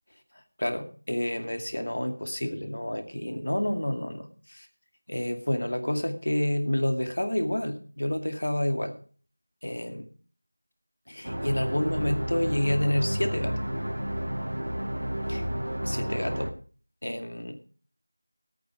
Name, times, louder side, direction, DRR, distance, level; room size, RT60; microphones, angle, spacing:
voice 1, 0.6-4.7 5.1-8.9 9.6-10.1 11.1-13.5 15.3-15.4 15.8-16.5 17.0-17.6, left 1 dB, 65° left, 6 dB, 2.3 m, -29 dB
sound 1, 11.2-16.5, equal, 80° right, 1.8 m, -31 dB
17.0 x 8.9 x 4.7 m, 0.40 s
figure-of-eight pair, 180°, 0 cm